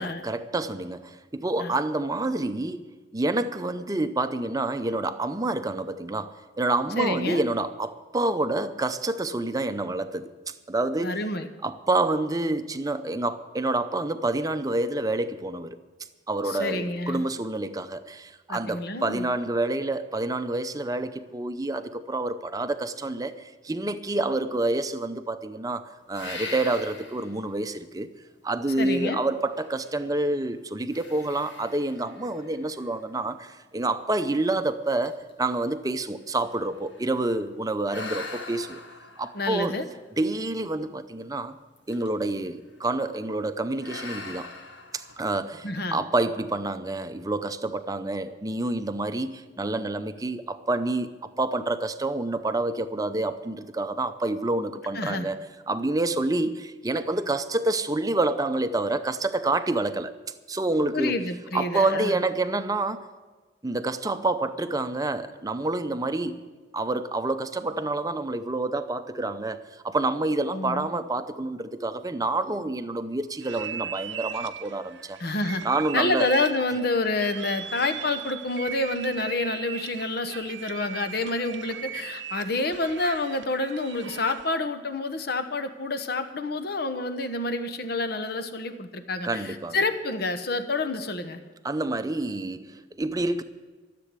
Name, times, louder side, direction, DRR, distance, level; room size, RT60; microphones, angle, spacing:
voice 1, 0.0-2.8 3.1-10.3 10.7-11.2 11.6-15.8 16.3-28.1 28.4-38.8 39.2-39.7 40.2-41.6 41.9-44.5 44.9-51.1 51.4-55.4 55.7-60.1 60.5-61.1 61.5-63.0 63.6-66.4 66.7-75.2 75.6-76.3 89.2-89.8 91.6-93.4, right 2 dB, 20° right, 10 dB, 0.6 m, -28 dB
voice 2, 7.0-7.4 11.0-11.5 16.4-17.2 18.5-19.3 28.8-29.2 39.3-39.8 45.6-46.0 54.9-55.3 60.9-62.2 70.5-70.9 75.2-75.6 75.9-91.4, left 2 dB, 55° left, 9 dB, 1.0 m, -28 dB
sound 1, 26.1-27.4 28.0-28.1 29.5-30.4 30.9-33.3 34.0-34.1 34.5-34.7 34.9-37.2 37.9-40.6 41.8-42.3 42.6-42.9 43.8-45.7, left 3 dB, 80° left, 1.7 m, -42 dB
sound 2, 73.4-84.6, right 9 dB, 70° right, 0.7 m, -38 dB
13.5 x 7.7 x 9.6 m, 1.3 s
head